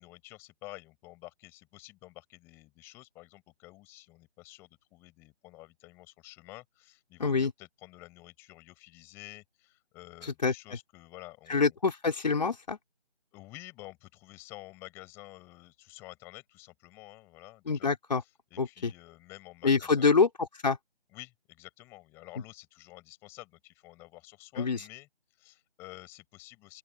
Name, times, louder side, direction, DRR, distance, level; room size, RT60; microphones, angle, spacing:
voice 1, 0.0-11.8 13.3-17.9 18.2-20.2 21.1-25.1 25.4-26.8, left 20 dB, 5° left, 5.1 m, -50 dB
voice 2, 7.2-7.5 10.2-10.5 11.5-12.8 17.7-18.2 18.6-18.9 19.6-20.8 24.6-24.8, left 4 dB, 40° left, 3.6 m, -26 dB
open air
figure-of-eight pair, 170°, 33 cm